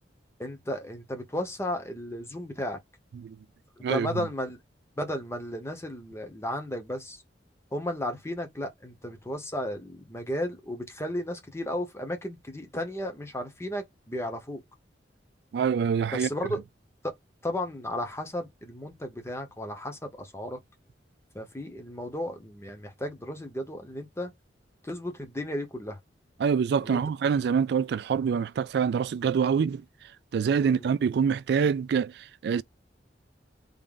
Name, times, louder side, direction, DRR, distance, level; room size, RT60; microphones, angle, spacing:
voice 1, 0.4-2.8 3.9-4.6 5.0-7.2 7.7-14.6 16.1-16.6 17.0-17.1 17.4-20.6 21.3-24.3 24.8-26.0 26.8-27.0 30.6-30.9, left 1 dB, 15° left, 0.9 m, -34 dB
voice 2, 15.5-16.3 26.4-29.8 30.3-32.1 32.4-32.6, right 6 dB, 65° right, 0.3 m, -25 dB
3.6 x 2.6 x 3.6 m
head